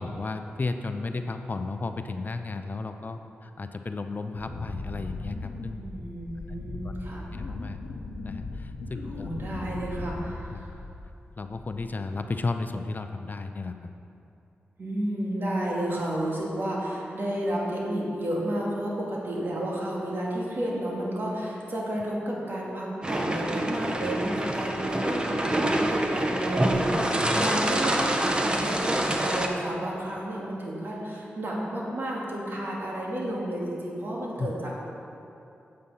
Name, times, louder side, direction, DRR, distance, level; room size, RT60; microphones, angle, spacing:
voice 1, 0.0-5.9 6.8-6.9 7.2-7.8 8.2-9.3 10.5-10.7 11.4-13.8 27.2-27.5 34.4-34.5, left 3 dB, 45° left, 7 dB, 0.5 m, -34 dB
Wind, 4.3-11.2 11.5-12.0, left 2 dB, 85° left, 0.8 m, -38 dB
voice 2, 5.8-7.3 9.1-10.7 14.8-34.7, right 1 dB, 55° right, -4 dB, 2.3 m, -31 dB
sound 1, 23.0-29.5, right 1 dB, 20° right, 0.9 m, -26 dB
8.6 x 7.6 x 5.6 m, 2.8 s
cardioid pair, 60°, 4 cm